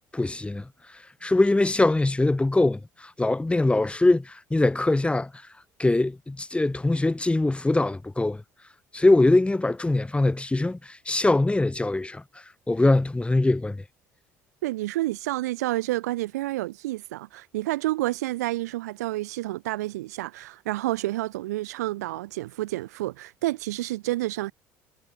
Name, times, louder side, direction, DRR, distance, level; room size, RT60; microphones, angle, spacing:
voice 1, 0.1-0.6 1.2-5.3 5.8-8.4 8.9-12.2 12.7-13.8, left 2 dB, 15° left, 3.6 m, -22 dB
voice 2, 14.6-24.5, right 17 dB, 85° right, 5.4 m, -29 dB
hypercardioid pair, 65°, 9 cm